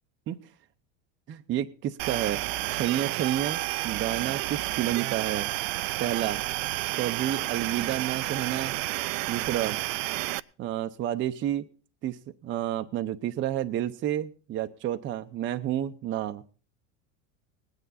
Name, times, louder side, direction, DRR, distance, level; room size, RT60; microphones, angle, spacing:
voice 1, 1.3-2.4 2.7-5.5 6.0-6.4 7.0-8.8 9.3-9.8 10.1-10.2 10.6-11.7 12.0-16.4, right 12 dB, 30° right, 7 dB, 0.7 m, -30 dB
sound 1, 2.0-10.4, right 18 dB, 75° right, 0.6 m, -31 dB
19.5 x 9.4 x 4.1 m, 0.38 s
supercardioid pair, 125°, 39 cm